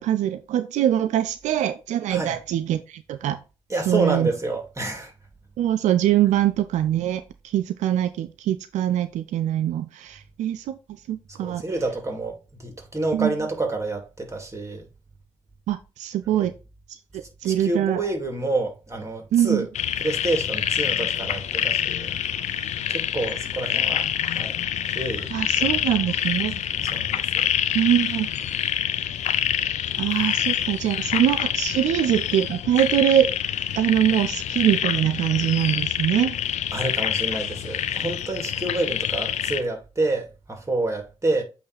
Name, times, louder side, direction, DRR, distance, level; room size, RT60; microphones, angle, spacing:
voice 1, 0.0-3.4 3.9-4.3 5.6-10.7 11.1-11.6 13.1-13.3 15.7-16.5 17.1-18.0 19.3-19.7 25.3-26.5 27.7-28.3 30.0-33.3 33.8-36.4, right 11 dB, 85° right, 0.4 m, -23 dB
voice 2, 3.7-5.1 11.4-14.9 16.4-16.5 17.4-19.7 20.0-22.2 22.9-24.6 24.8-25.3 25.6-25.8 26.8-27.2 36.7-41.4, right 2 dB, 25° right, 2.4 m, -28 dB
sound 1, 19.7-39.6, left 10 dB, 80° left, 0.5 m, -26 dB
8.5 x 3.0 x 4.0 m
supercardioid pair, 40°, 12 cm